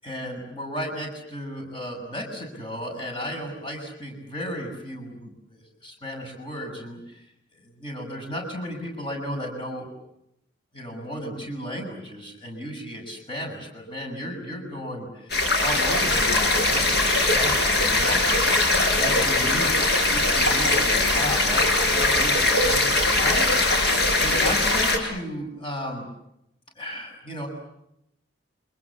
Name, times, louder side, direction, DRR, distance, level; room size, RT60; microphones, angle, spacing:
voice 1, 0.0-7.2 7.5-9.9 10.7-18.6 18.9-23.5 24.2-26.0 26.8-27.5, equal, 25° left, 1 dB, 6.8 m, -34 dB
sound 1, 15.3-25.0, left 2 dB, 55° left, 5.2 m, -21 dB
29.0 x 26.5 x 7.4 m, 0.81 s
head